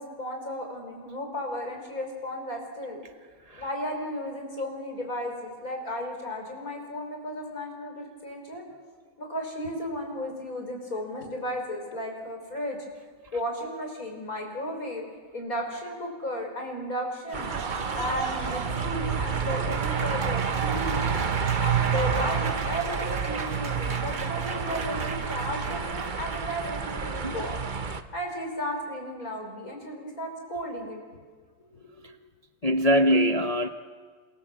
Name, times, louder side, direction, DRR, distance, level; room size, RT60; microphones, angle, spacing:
voice 1, 0.0-3.0 3.6-8.6 9.2-12.8 13.3-15.0 15.3-17.5 17.9-21.1 21.6-27.6 28.1-31.0 31.7-32.1, equal, 40° left, 2 dB, 6.0 m, -34 dB
Applause, 17.3-26.7, right 5 dB, 45° right, 1.6 m, -36 dB
sound 1, 17.3-28.0, right 6 dB, 75° right, 0.4 m, -29 dB
voice 2, 32.6-33.7, equal, 55° left, 5 dB, 0.4 m, -22 dB
28.0 x 26.5 x 7.7 m, 1.6 s
omnidirectional pair, 2.4 m